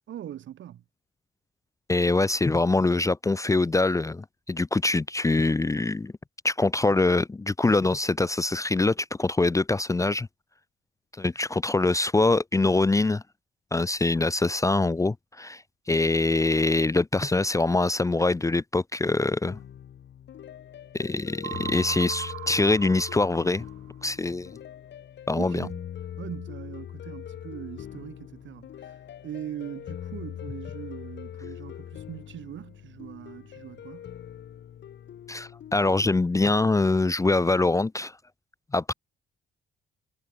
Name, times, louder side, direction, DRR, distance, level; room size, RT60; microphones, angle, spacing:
voice 1, 0.1-0.8 25.4-25.9 26.2-34.1, right 11 dB, 70° right, 3.7 m, -41 dB
voice 2, 1.9-6.1 6.4-10.3 11.2-13.2 13.7-15.6 15.9-19.6 20.9-23.6 24.0-24.5 25.3-25.7 35.3-38.1 38.7-38.9, left 2 dB, 15° left, 0.6 m, -24 dB
sound 1, 19.4-36.1, left 10 dB, 65° left, 2.1 m, -42 dB
sound 2, 21.4-24.0, right 16 dB, 90° right, 1.9 m, -39 dB
cardioid pair, 90°, 20 cm